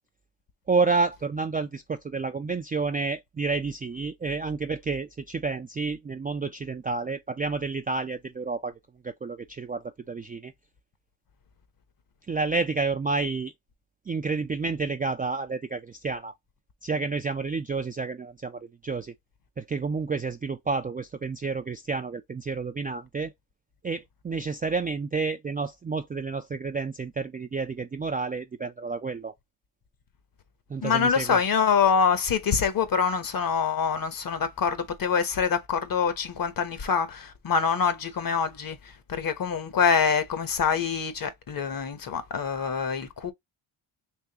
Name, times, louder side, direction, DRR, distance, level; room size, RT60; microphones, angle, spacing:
voice 1, 0.7-8.8 9.0-10.5 12.3-13.5 14.1-16.3 16.8-19.1 19.6-23.3 23.8-29.3 30.7-31.4, right 4 dB, 20° right, 0.3 m, -30 dB
voice 2, 30.8-43.3, left 6 dB, 45° left, 1.0 m, -25 dB
3.6 x 3.1 x 2.8 m
cardioid pair, 105°, 49 cm